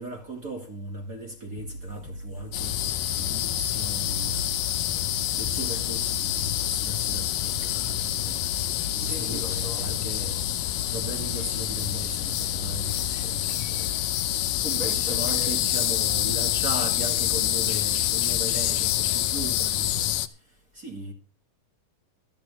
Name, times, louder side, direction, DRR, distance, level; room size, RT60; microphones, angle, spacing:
voice 1, 0.0-4.5 5.3-10.4 10.9-13.9 14.6-20.1 20.7-21.1, right 2 dB, 30° right, 2.0 m, -37 dB
sound 1, 1.6-18.6, equal, 75° left, 4.2 m, -41 dB
sound 2, 2.5-20.3, left 14 dB, 90° left, 2.5 m, -27 dB
voice 2, 9.0-10.7 14.6-15.6, equal, ahead, 1.4 m, -41 dB
24.5 x 8.7 x 3.4 m
omnidirectional pair, 3.7 m